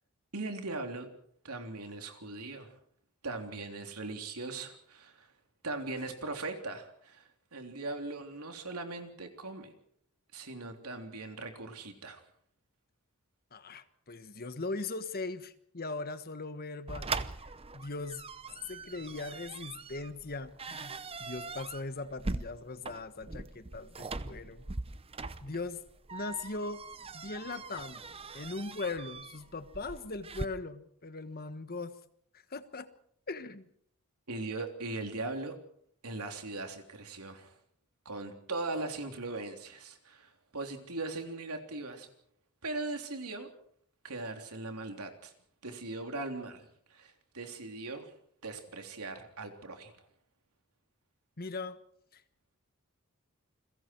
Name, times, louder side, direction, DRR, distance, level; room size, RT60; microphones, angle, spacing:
voice 1, 0.3-1.1 1.4-2.7 3.2-5.3 5.6-9.7 10.3-12.2 34.3-35.6 36.0-37.5 38.1-42.1 42.6-43.5 44.0-45.3 45.6-48.1 48.4-49.9, right 2 dB, 85° right, 5 dB, 3.4 m, -39 dB
voice 2, 13.5-18.2 18.7-24.6 25.4-25.8 26.1-26.9 27.1-28.0 28.3-32.0 32.3-32.9 33.3-33.7 51.4-51.8 52.1-52.2, left 3 dB, 45° left, 11 dB, 1.4 m, -40 dB
sound 1, 16.9-30.5, right 3 dB, 25° right, 0.8 m, -41 dB
29.5 x 22.0 x 4.6 m, 0.65 s
head